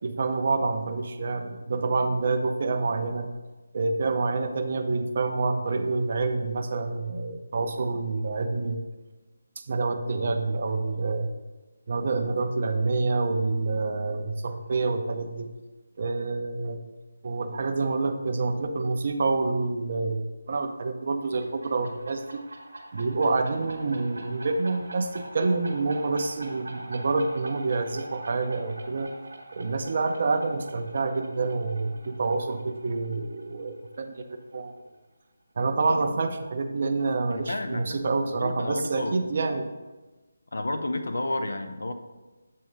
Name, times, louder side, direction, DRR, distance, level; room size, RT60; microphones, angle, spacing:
voice 1, 0.0-3.3 3.7-8.8 9.6-11.3 11.9-15.5 16.0-16.8 17.2-22.4 22.9-29.1 29.5-34.7 35.6-39.7, right 3 dB, 50° right, 6 dB, 0.6 m, -27 dB
sound 1, 21.2-34.6, right 2 dB, 80° right, 1.1 m, -44 dB
voice 2, 35.9-36.3 37.3-38.0 38.3-39.2 40.5-41.9, left 2 dB, 75° left, 7 dB, 0.6 m, -32 dB
7.5 x 2.8 x 5.3 m, 1.2 s
figure-of-eight pair, 155°, 0 cm